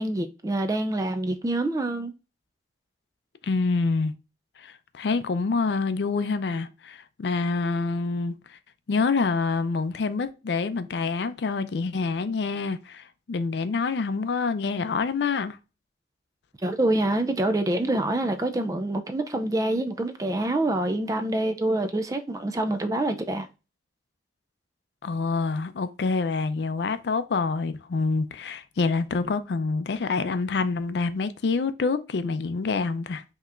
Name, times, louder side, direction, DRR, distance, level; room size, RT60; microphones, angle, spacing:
voice 1, 0.0-2.1 16.6-23.5, right 1 dB, 20° right, 0.3 m, -26 dB
voice 2, 3.4-4.1 4.6-8.6 8.9-15.6 25.0-33.2, left 4 dB, 80° left, 0.4 m, -27 dB
5.4 x 2.9 x 2.4 m
head